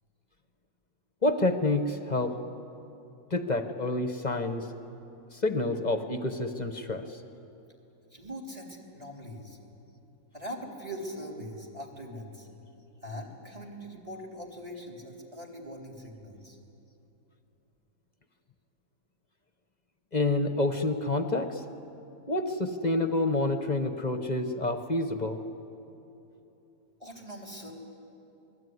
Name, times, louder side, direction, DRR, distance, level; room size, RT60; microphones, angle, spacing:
voice 1, 1.2-2.4 3.3-4.7 5.3-7.0 20.1-21.6 22.3-25.4, left 2 dB, 30° left, 8 dB, 1.1 m, -28 dB
voice 2, 8.1-9.6 10.3-12.5 13.0-16.6 27.0-27.7, equal, 20° right, 1 dB, 3.6 m, -41 dB
27.0 x 20.5 x 9.6 m, 2.9 s
omnidirectional pair, 1.6 m